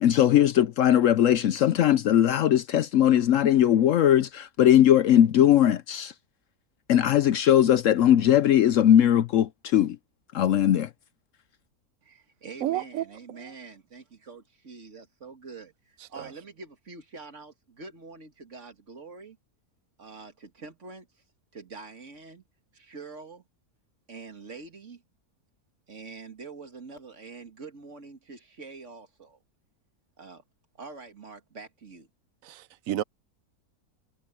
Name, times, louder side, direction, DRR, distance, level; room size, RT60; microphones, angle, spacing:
voice 1, 0.0-6.1 6.9-10.0 10.3-10.9, left 11 dB, 65° left, 0.9 m, -20 dB
voice 2, 12.0-19.4 20.0-21.2 21.5-22.5 22.7-23.4 24.1-25.0 25.9-29.4 30.2-30.4 30.8-32.1, right 4 dB, 50° right, 2.3 m, -45 dB
voice 3, 12.6-13.0 13.3-13.5 16.2-16.3 32.4-33.0, right 13 dB, 65° right, 1.1 m, -31 dB
omnidirectional pair, 1.6 m